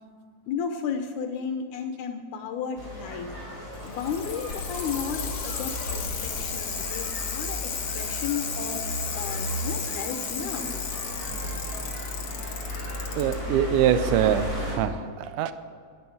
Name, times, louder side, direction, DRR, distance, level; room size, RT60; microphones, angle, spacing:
voice 1, 0.5-3.3 3.8-10.7, left 6 dB, 80° left, 6 dB, 2.2 m, -33 dB
sound 1, 2.7-14.7, left 1 dB, 20° right, 3.8 m, -35 dB
Bicycle, 3.7-13.3 14.4-14.5, left 5 dB, 50° left, 2.4 m, -34 dB
sound 2, 10.1-10.9 13.2-13.7, left 2 dB, 5° left, 1.2 m, -42 dB
voice 2, 13.2-15.5, right 10 dB, 85° right, 12 dB, 2.1 m, -24 dB
11.0 x 10.5 x 7.0 m, 2.2 s
omnidirectional pair, 3.6 m